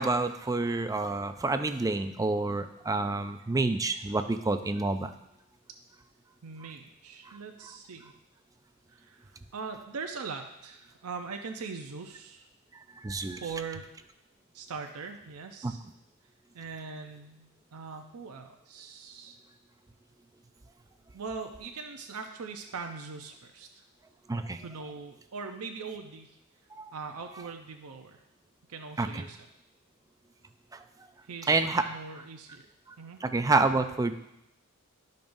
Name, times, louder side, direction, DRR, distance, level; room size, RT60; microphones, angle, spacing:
voice 1, 0.0-5.1 13.0-13.4 15.6-15.7 24.3-24.6 26.8-26.9 29.0-29.2 31.5-31.9 33.2-34.1, right 3 dB, 15° right, 9 dB, 0.4 m, -28 dB
voice 2, 6.4-8.1 8.9-12.5 13.4-13.9 14.5-15.8 16.5-19.4 21.1-23.8 24.6-26.4 26.9-28.2 28.7-29.4 31.3-32.7 33.0-33.2, right 5 dB, 75° right, 4 dB, 0.6 m, -41 dB
12.5 x 5.3 x 2.6 m, 0.86 s
head